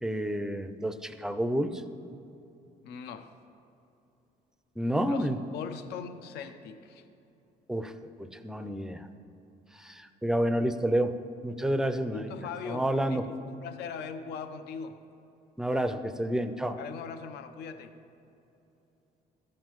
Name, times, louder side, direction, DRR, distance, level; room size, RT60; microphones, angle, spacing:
voice 1, 0.0-1.7 4.8-5.4 7.7-7.9 8.4-9.1 9.8-11.2 11.4-12.3 12.7-13.2 15.6-16.8, right 1 dB, 5° right, 9 dB, 0.4 m, -29 dB
voice 2, 2.8-3.3 5.1-7.0 12.1-15.0 16.8-17.9, left 6 dB, 75° left, 9 dB, 0.6 m, -40 dB
13.5 x 7.5 x 3.0 m, 2.9 s
cardioid pair, 110°, 17 cm